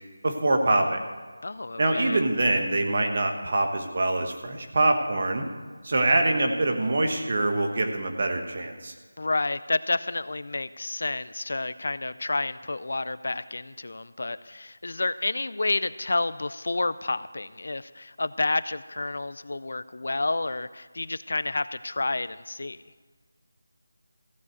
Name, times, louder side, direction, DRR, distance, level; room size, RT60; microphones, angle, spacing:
voice 1, 0.2-1.0 1.8-5.4 5.8-8.9, right 2 dB, 30° right, 4 dB, 1.2 m, -24 dB
voice 2, 1.4-2.3 9.2-22.8, left 2 dB, 50° left, 15 dB, 0.4 m, -30 dB
15.0 x 7.3 x 8.0 m, 1.5 s
figure-of-eight pair, 180°, 0 cm